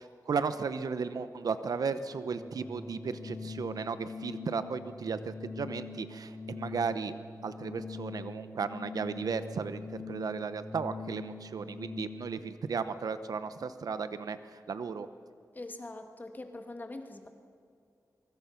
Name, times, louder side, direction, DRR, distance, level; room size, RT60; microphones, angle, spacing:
voice 1, 0.0-7.1 7.4-15.1, right 5 dB, 75° right, 11 dB, 0.9 m, -35 dB
Organ, 2.1-12.4, left 4 dB, 10° left, 2.8 m, -44 dB
voice 2, 15.5-17.3, left 2 dB, 30° left, 6 dB, 1.6 m, -43 dB
24.0 x 23.0 x 5.9 m, 2.5 s
wide cardioid pair, 140°, 6 cm